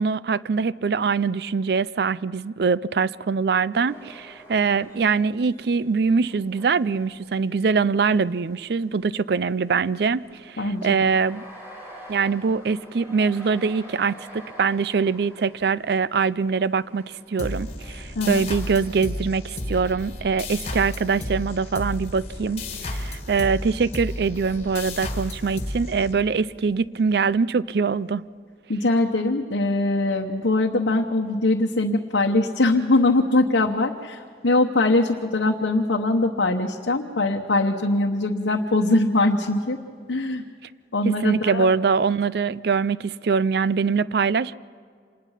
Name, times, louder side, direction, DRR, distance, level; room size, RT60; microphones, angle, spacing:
voice 1, 0.0-11.4 12.1-28.2 41.1-44.5, right 5 dB, 60° right, 0.4 m, -23 dB
sound 1, 3.7-7.8 8.3-8.4 9.3-18.6, equal, 15° right, 5.0 m, -47 dB
voice 2, 10.6-11.0 18.2-18.5 28.7-39.8 40.1-40.4 40.9-41.7, left 2 dB, 85° left, 1.0 m, -22 dB
sound 2, 17.4-26.6, left 1 dB, 35° left, 1.7 m, -33 dB
26.5 x 20.0 x 5.7 m
head